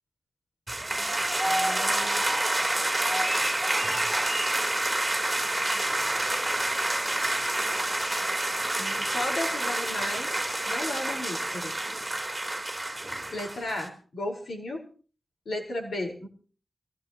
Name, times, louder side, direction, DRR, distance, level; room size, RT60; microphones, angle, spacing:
sound 1, 0.7-13.9, right 1 dB, 15° right, 3.3 m, -28 dB
voice 1, 0.9-2.2 8.8-10.3 10.6-11.7 13.3-14.9 15.4-16.3, left 1 dB, 80° left, 1 dB, 4.6 m, -35 dB
21.0 x 17.0 x 3.0 m, 0.40 s
wide cardioid pair, 90°, 0 cm